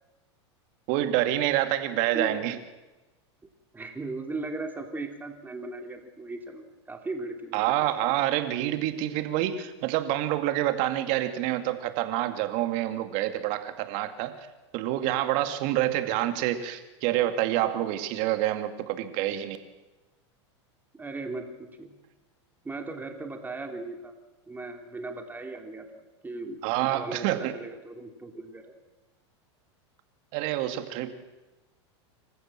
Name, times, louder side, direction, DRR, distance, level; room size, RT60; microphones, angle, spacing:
voice 1, 0.9-2.6 7.5-14.3 14.7-19.6 26.6-27.5 30.3-31.2, right 13 dB, 55° right, 8 dB, 2.3 m, -27 dB
voice 2, 3.7-7.6 20.9-21.9 22.6-24.1 24.5-25.9 26.2-26.6 26.9-28.7, right 2 dB, 10° right, 4 dB, 3.2 m, -37 dB
26.0 x 14.5 x 7.6 m, 1.1 s
hypercardioid pair, 110°, 15 cm